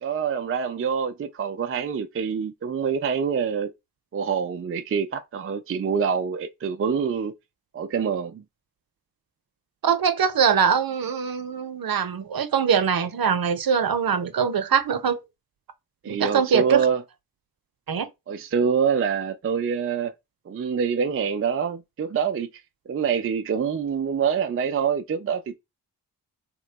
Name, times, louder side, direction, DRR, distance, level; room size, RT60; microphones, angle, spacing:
voice 1, 0.0-3.7 4.1-7.3 7.7-8.4 16.0-17.0 18.3-20.1 20.5-22.5 22.9-25.6, right 6 dB, 35° right, 0.4 m, -25 dB
voice 2, 9.8-15.2 16.1-16.9 17.9-18.1, right 7 dB, 55° right, 0.8 m, -22 dB
3.0 x 2.2 x 3.8 m
cardioid pair, 55°, 42 cm